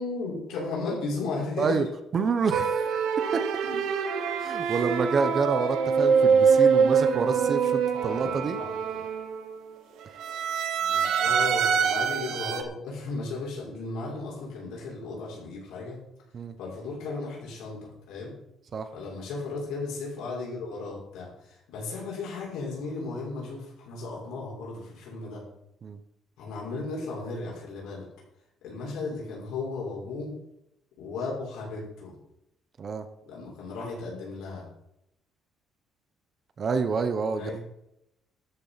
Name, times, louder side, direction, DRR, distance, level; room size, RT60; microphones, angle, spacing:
voice 1, 0.0-1.8 3.6-3.8 4.6-4.9 7.2-7.4 8.1-9.0 10.9-16.0 16.6-18.3 18.9-25.4 26.4-28.1 28.6-30.3 31.0-32.1 33.3-34.7 37.3-37.6, left 3 dB, 90° left, -4 dB, 5.8 m, -35 dB
voice 2, 2.1-3.0 3.3-3.4 4.4-8.6 16.3-16.5 18.7-18.9 25.8-26.0 32.8-33.0 36.6-37.6, right 5 dB, 30° right, 9 dB, 0.9 m, -28 dB
sound 1, 2.5-9.6 10.2-12.6, right 6 dB, 70° right, 1.2 m, -24 dB
13.0 x 7.5 x 5.8 m, 0.81 s
cardioid pair, 170°, 0 cm